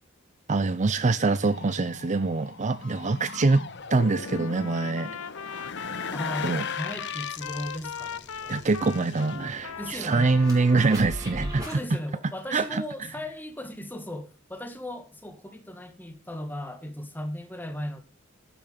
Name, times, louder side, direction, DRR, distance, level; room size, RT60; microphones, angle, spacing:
voice 1, 0.5-3.6 3.9-5.1 6.4-6.6 8.5-11.6 12.5-12.8, right 3 dB, 35° right, 0.5 m, -24 dB
sound 1, 1.4-10.6 10.9-11.3, left 5 dB, 55° left, 1.3 m, -39 dB
Trumpet, 4.1-10.9, left 7 dB, 80° left, 0.7 m, -38 dB
voice 2, 6.1-8.7 9.8-10.3 11.6-18.0, left 1 dB, 10° left, 1.8 m, -37 dB
sound 2, 6.8-11.8, right 1 dB, 15° right, 6.3 m, -41 dB
12.0 x 9.3 x 5.1 m
head